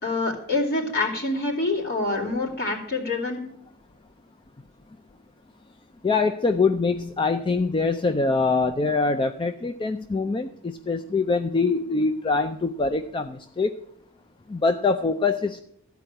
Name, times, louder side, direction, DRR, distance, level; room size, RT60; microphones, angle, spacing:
voice 1, 0.0-3.4, left 2 dB, 50° left, -3 dB, 3.0 m, -26 dB
voice 2, 6.0-13.7 14.5-15.6, left 4 dB, 25° left, 8 dB, 0.4 m, -24 dB
14.0 x 4.7 x 8.9 m, 0.73 s
head